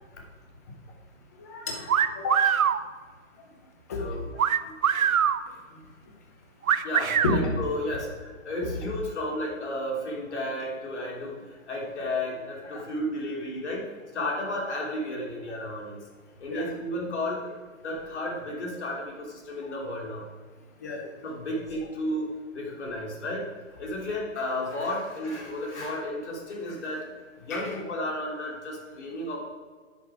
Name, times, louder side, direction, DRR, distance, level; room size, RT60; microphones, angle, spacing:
voice 1, 1.4-2.4 3.9-4.0 7.2-7.4 8.6-8.7 16.5-16.6 20.8-21.1 27.5-27.8, left 3 dB, 10° left, 1 dB, 0.6 m, -31 dB
sound 1, 1.9-2.8 4.4-5.4 6.7-7.4, right 8 dB, 90° right, 0.7 m, -23 dB
voice 2, 3.9-4.3 4.6-5.0 5.7-5.8 6.7-16.0 16.4-17.5 17.8-20.3 21.2-27.1 27.4-29.4, left 1 dB, 55° left, -1 dB, 3.0 m, -33 dB
10.5 x 6.5 x 4.7 m, 1.5 s
hypercardioid pair, 160°, 41 cm